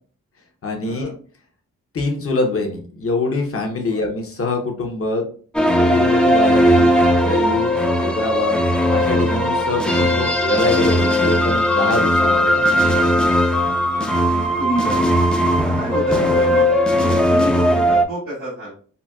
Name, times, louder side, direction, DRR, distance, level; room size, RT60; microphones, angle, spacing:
voice 1, 0.6-1.2 1.9-5.3 5.9-8.6 8.9-12.5, left 3 dB, 50° left, 2 dB, 0.9 m, -24 dB
sound 1, 5.5-18.0, equal, 5° left, 0.5 m, -17 dB
voice 2, 12.2-12.6 13.9-15.0 15.6-16.7 17.0-18.7, right 1 dB, 90° right, -11 dB, 1.5 m, -29 dB
3.9 x 2.2 x 2.3 m, 0.44 s
cardioid pair, 55°, 30 cm